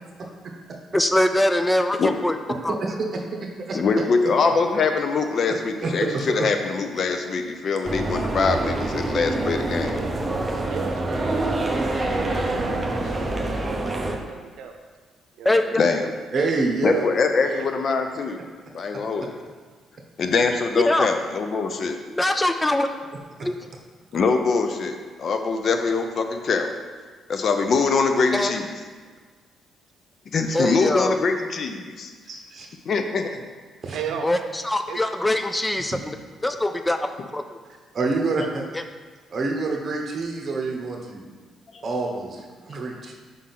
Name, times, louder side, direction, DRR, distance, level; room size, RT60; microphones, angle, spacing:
voice 1, 0.9-2.8 3.7-3.8 15.4-15.8 20.7-21.1 22.1-22.9 23.4-23.6 28.3-28.5 30.5-31.2 34.2-36.2 36.4-37.6, left 1 dB, 10° left, 7 dB, 0.4 m, -23 dB
voice 2, 2.7-3.8 5.8-6.1 16.3-17.1 32.3-32.7 33.8-34.2 35.9-36.0 37.9-38.6 39.3-41.2 41.8-43.1, right 3 dB, 50° right, 1 dB, 1.1 m, -27 dB
voice 3, 3.7-10.0 15.8-16.1 16.8-18.4 18.7-19.4 20.2-22.0 24.1-26.7 27.3-28.7 30.3-32.1 32.9-33.4 41.7-41.8, left 4 dB, 55° left, 6 dB, 0.6 m, -23 dB
sound 1, 7.8-14.2, right 2 dB, 20° right, 0.7 m, -26 dB
voice 4, 10.7-14.7 15.4-16.0 17.4-17.8 33.9-34.4 34.9-35.0, right 7 dB, 80° right, 4 dB, 0.6 m, -36 dB
5.3 x 3.7 x 5.8 m, 1.5 s
cardioid pair, 90°, 0 cm